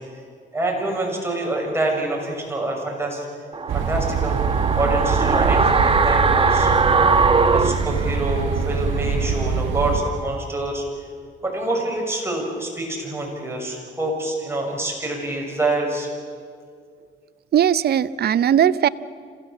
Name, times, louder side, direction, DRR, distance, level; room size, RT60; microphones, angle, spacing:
voice 1, 0.5-3.3 3.7-4.4 4.7-6.7 7.5-10.8 11.4-16.1, right 1 dB, 10° right, -1 dB, 6.5 m, -26 dB
sound 1, 3.5-8.7 9.0-9.1, right 4 dB, 25° right, 1.1 m, -20 dB
sound 2, 3.7-10.0, right 5 dB, 75° right, 1.5 m, -24 dB
voice 2, 17.5-18.9, right 9 dB, 55° right, 16 dB, 0.7 m, -18 dB
27.0 x 16.5 x 7.5 m, 2.1 s
cardioid pair, 90°, 20 cm